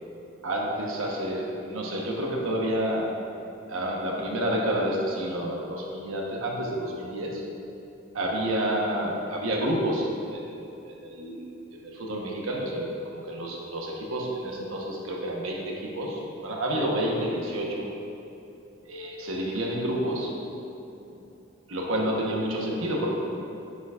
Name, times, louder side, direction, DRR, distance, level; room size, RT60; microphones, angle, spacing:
voice 1, 0.4-3.1 3.7-7.4 8.1-10.6 10.9-11.4 11.7-17.9 18.9-20.3 21.7-23.1, right 1 dB, 85° right, -2 dB, 1.0 m, -29 dB
7.2 x 7.0 x 2.4 m, 2.8 s
head